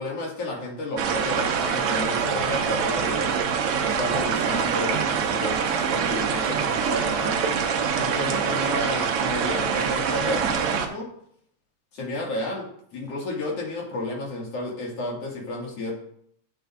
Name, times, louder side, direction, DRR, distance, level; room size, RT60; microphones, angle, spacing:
voice 1, 0.0-3.3 3.8-7.4 7.9-11.1 11.9-12.7 12.9-15.9, left 2 dB, 50° left, -2 dB, 2.9 m, -32 dB
sound 1, 1.0-10.9, right 6 dB, 80° right, 1.3 m, -25 dB
9.6 x 9.3 x 2.5 m, 0.68 s
omnidirectional pair, 3.7 m